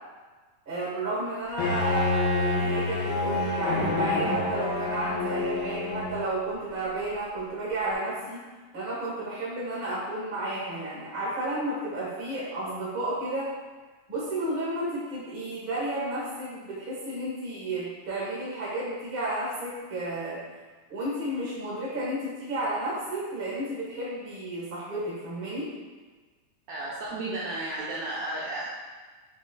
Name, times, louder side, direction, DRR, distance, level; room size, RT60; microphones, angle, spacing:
voice 1, 0.6-8.5 8.7-13.5 14.1-20.4 20.9-25.7, right 1 dB, 50° right, -8 dB, 0.6 m, -32 dB
Bowed string instrument, 1.6-6.4, left 2 dB, 85° left, 2.5 m, -27 dB
voice 2, 26.7-28.7, right 2 dB, 85° right, -7 dB, 1.6 m, -33 dB
6.9 x 2.5 x 2.4 m, 1.3 s
omnidirectional pair, 3.7 m